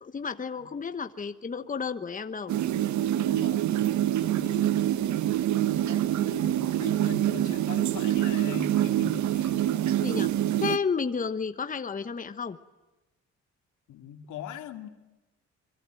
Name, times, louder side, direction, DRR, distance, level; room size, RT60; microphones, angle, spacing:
voice 1, 0.0-2.5 9.5-9.6 10.0-10.3 10.6-12.6, left 5 dB, 25° left, 10 dB, 1.1 m, -32 dB
sound 1, 2.5-10.8, right 12 dB, 70° right, 1.0 m, -26 dB
voice 2, 3.3-3.8 4.3-4.9 5.4-9.7 13.9-14.9, left 8 dB, 80° left, 6 dB, 2.5 m, -41 dB
26.5 x 23.5 x 9.2 m, 1.0 s
cardioid pair, 90°, 30 cm